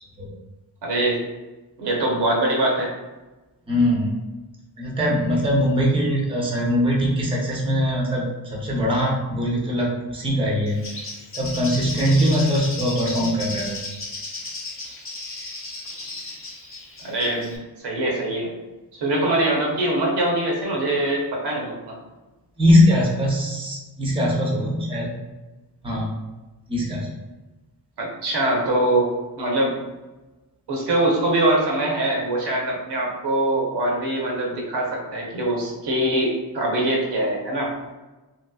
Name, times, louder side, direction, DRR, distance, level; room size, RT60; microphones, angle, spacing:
voice 1, 0.8-1.2 1.8-2.9 17.0-18.5 18.9-22.0 28.0-29.1 29.4-29.8 30.7-37.7, right 1 dB, 80° right, -1 dB, 0.9 m, -23 dB
voice 2, 3.7-4.2 4.8-8.2 8.5-10.8 11.3-13.8 22.6-25.1 25.8-26.1 26.7-27.1, equal, 15° right, -3 dB, 0.6 m, -21 dB
Bird, 10.7-17.6, left 2 dB, 35° left, 0.7 m, -34 dB
3.0 x 2.9 x 2.3 m, 1.1 s
wide cardioid pair, 110°, 41 cm